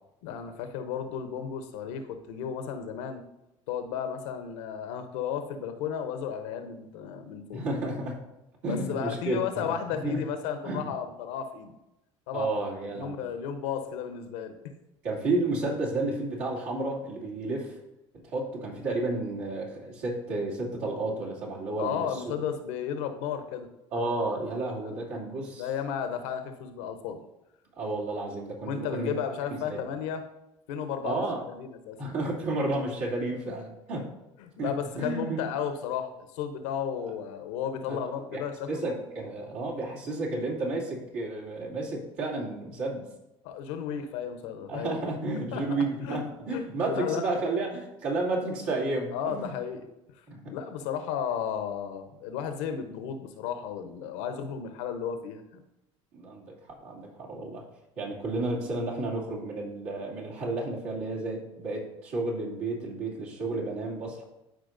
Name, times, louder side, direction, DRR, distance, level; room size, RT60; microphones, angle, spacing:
voice 1, 0.2-3.2 3.7-7.6 8.7-11.8 12.3-12.5 12.9-14.6 21.8-23.7 25.6-27.2 28.6-30.3 30.7-32.0 33.5-33.6 34.4-39.0 43.4-45.1 45.5-45.7 46.0-46.2 46.5-46.6 46.9-47.2 49.1-49.9 50.5-55.6, left 8 dB, 75° left, 8 dB, 0.8 m, -34 dB
voice 2, 7.5-8.2 8.6-10.2 10.6-10.9 12.3-13.2 15.0-17.8 18.2-22.3 23.9-25.7 27.8-29.1 29.6-29.8 31.0-31.4 32.0-34.1 34.6-34.7 35.0-35.4 37.9-38.4 38.7-43.1 44.7-49.5 50.3-50.5 56.1-57.6 58.0-64.2, right 2 dB, 70° right, -4 dB, 2.6 m, -32 dB
13.0 x 4.7 x 2.6 m, 0.91 s
hypercardioid pair, 70°, 15 cm